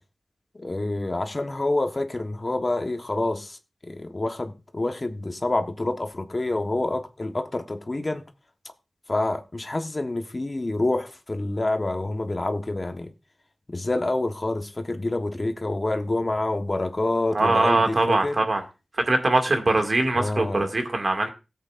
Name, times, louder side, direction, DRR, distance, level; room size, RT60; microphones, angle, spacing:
voice 1, 0.5-3.6 3.8-8.2 9.1-13.1 13.7-18.4 20.2-20.7, left 2 dB, 35° left, 1.2 m, -27 dB
voice 2, 17.3-18.6 19.1-21.3, right 2 dB, 50° right, 2.1 m, -22 dB
17.5 x 8.1 x 2.5 m
wide cardioid pair, 85°, 0 cm